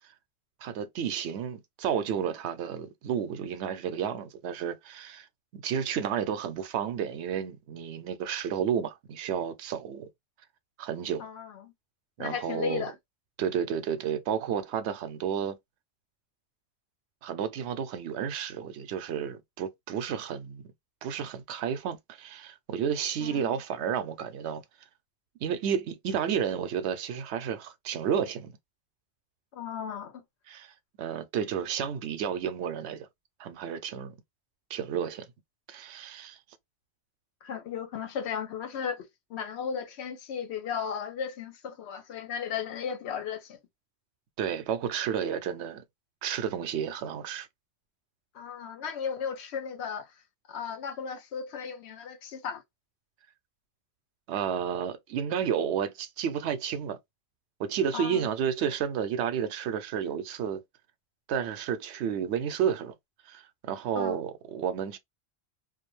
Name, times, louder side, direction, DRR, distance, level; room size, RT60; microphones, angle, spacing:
voice 1, 0.6-5.3 5.5-10.1 10.8-11.3 12.2-12.9 13.4-15.6 17.2-20.6 21.0-24.6 25.4-28.6 30.5-33.1 33.4-34.1 34.7-35.3 35.7-36.4 44.4-45.8 46.2-47.5 54.3-57.0 57.6-60.6 61.3-62.9 63.3-65.0, right 8 dB, 85° right, 0.8 m, -31 dB
voice 2, 11.2-11.7 12.2-12.9 23.2-23.6 29.5-30.2 37.4-43.6 48.3-50.1 50.5-52.6 57.9-58.3 64.0-64.2, left 7 dB, 80° left, 0.9 m, -35 dB
2.4 x 2.2 x 3.0 m
omnidirectional pair, 1.1 m